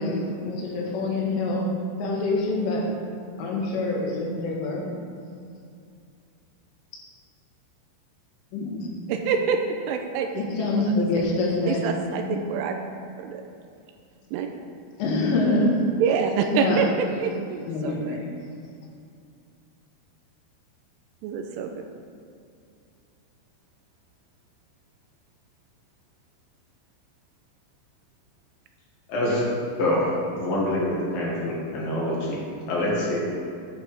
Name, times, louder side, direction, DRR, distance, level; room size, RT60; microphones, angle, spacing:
voice 1, 0.0-3.0 3.4-5.0 8.5-9.1 10.3-11.8 12.3-12.4 15.0-15.8 16.5-16.8 17.7-18.3, left 2 dB, 75° left, -3 dB, 4.2 m, -26 dB
voice 2, 9.1-9.6 9.9-10.7 11.7-12.7 13.2-13.4 14.3-14.5 16.0-16.9 17.2-18.2 21.2-21.7, right 7 dB, 85° right, 5 dB, 3.1 m, -26 dB
voice 3, 29.1-29.4 29.8-33.2, left 1 dB, 60° left, -5 dB, 2.8 m, -26 dB
11.0 x 10.5 x 3.6 m, 2.4 s
omnidirectional pair, 5.8 m